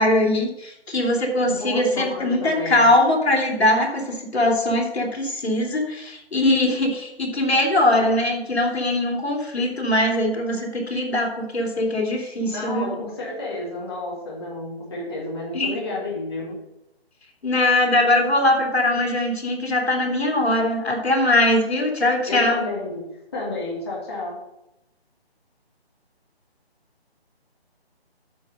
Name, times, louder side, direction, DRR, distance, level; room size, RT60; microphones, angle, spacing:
voice 1, 0.0-12.9 15.5-15.8 17.4-22.6, left 1 dB, 75° left, 1 dB, 3.1 m, -21 dB
voice 2, 1.4-2.9 12.4-16.6 22.2-23.0 23.3-24.4, left 2 dB, 25° left, -5 dB, 1.9 m, -31 dB
9.5 x 4.9 x 6.5 m, 0.87 s
hypercardioid pair, 175°, 32 cm